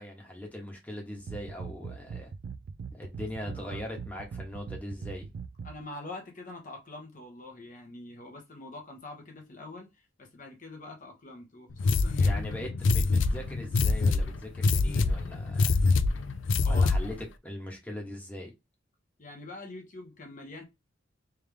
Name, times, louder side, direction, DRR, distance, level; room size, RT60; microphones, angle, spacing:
voice 1, 0.0-2.3 2.9-5.3 12.2-15.8 16.6-17.2 17.4-18.5, left 1 dB, 10° left, 1.3 m, -40 dB
sound 1, 1.2-5.8, right 5 dB, 55° right, 0.3 m, -41 dB
voice 2, 3.1-3.9 5.6-12.5 16.6-17.1 19.2-20.6, left 2 dB, 45° left, 1.1 m, -45 dB
sound 2, 11.8-17.2, left 3 dB, 70° left, 0.4 m, -25 dB
3.5 x 3.1 x 3.4 m
head